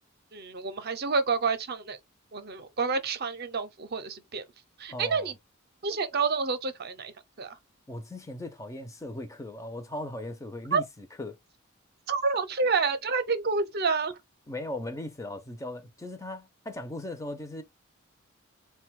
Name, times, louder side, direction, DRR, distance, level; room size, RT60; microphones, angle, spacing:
voice 1, 0.3-2.0 2.3-4.4 4.8-5.3 5.8-7.6 10.7-10.8 12.1-14.2, right 4 dB, 50° right, 0.6 m, -29 dB
voice 2, 4.9-5.3 7.9-11.4 14.5-17.6, left 1 dB, 15° left, 0.5 m, -38 dB
3.9 x 2.2 x 4.5 m
head